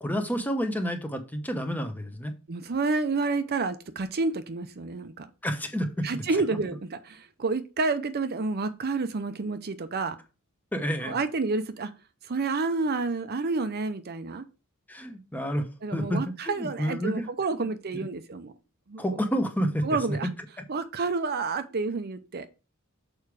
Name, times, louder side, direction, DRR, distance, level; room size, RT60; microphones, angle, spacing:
voice 1, 0.0-2.3 5.4-6.2 10.7-11.2 14.9-15.7 15.9-17.3 17.6-18.1 19.0-20.2 20.6-20.7, equal, 10° left, 0.9 m, -30 dB
voice 2, 2.5-5.3 6.0-10.2 11.0-11.9 12.3-14.4 15.8-18.5 18.9-19.0 19.8-20.3 20.7-22.5, right 3 dB, 45° right, 0.6 m, -29 dB
6.6 x 4.7 x 4.7 m
head